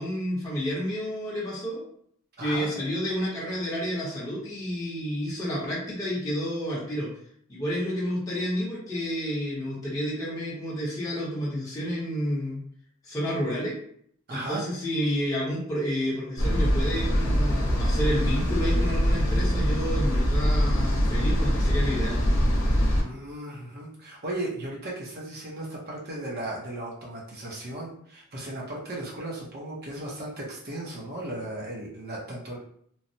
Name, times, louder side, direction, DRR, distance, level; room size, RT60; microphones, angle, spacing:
voice 1, 0.0-1.8 2.4-7.1 7.5-12.6 13.0-13.8 14.3-22.2, equal, 15° left, -7 dB, 0.7 m, -30 dB
voice 2, 2.4-2.7 14.3-14.6 22.8-32.6, right 1 dB, 45° right, -4 dB, 0.6 m, -36 dB
sound 1, 16.4-23.0, equal, 60° left, 0.8 m, -23 dB
3.1 x 2.0 x 2.6 m, 0.65 s
head